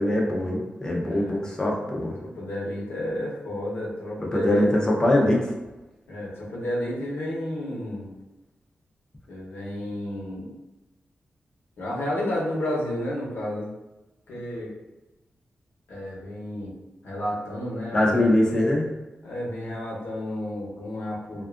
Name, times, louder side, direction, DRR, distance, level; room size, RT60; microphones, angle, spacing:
voice 1, 0.0-2.2 4.3-5.5 17.9-18.9, left 1 dB, 20° left, -3 dB, 0.5 m, -22 dB
voice 2, 1.0-1.5 1.8-1.9 2.2-4.9 6.1-8.1 9.3-10.5 11.8-13.7 14.3-14.7 15.9-16.8 17.0-18.2 19.2-21.4, left 1 dB, 85° left, -5 dB, 0.8 m, -31 dB
2.5 x 2.3 x 2.4 m, 1.0 s
wide cardioid pair, 160°, 4 cm